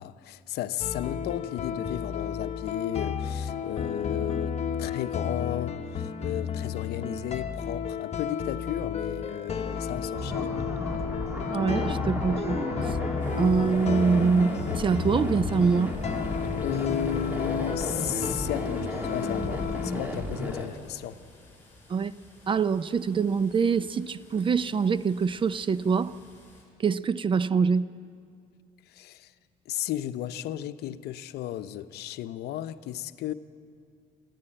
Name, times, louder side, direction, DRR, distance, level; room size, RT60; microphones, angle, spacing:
voice 1, 0.0-10.6 16.6-21.2 28.9-29.3 29.7-33.3, left 12 dB, 75° left, 0.7 m, -34 dB
sound 1, 0.8-19.9, left 7 dB, 40° left, 1.2 m, -32 dB
sound 2, 10.1-20.7, left 1 dB, 10° right, 2.7 m, -33 dB
voice 2, 11.5-12.6 12.8-13.0 13.4-16.0 21.9-22.1 22.5-26.2 26.8-27.9, right 5 dB, 30° right, 0.5 m, -24 dB
sound 3, 13.2-26.6, left 2 dB, 10° left, 7.2 m, -56 dB
22.5 x 14.5 x 8.8 m
cardioid pair, 110°, 17 cm